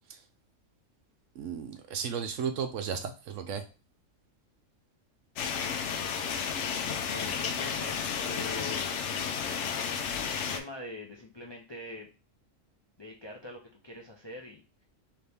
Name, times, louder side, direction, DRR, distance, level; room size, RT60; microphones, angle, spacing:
voice 1, 1.4-3.6, right 7 dB, 75° right, 8 dB, 0.9 m, -34 dB
sound 1, 5.4-10.6, left 7 dB, 70° left, 0.9 m, -32 dB
voice 2, 7.1-8.9 10.3-12.1 13.0-14.6, left 1 dB, 45° left, -1 dB, 0.3 m, -43 dB
4.1 x 3.0 x 3.4 m, 0.33 s
omnidirectional pair, 1.4 m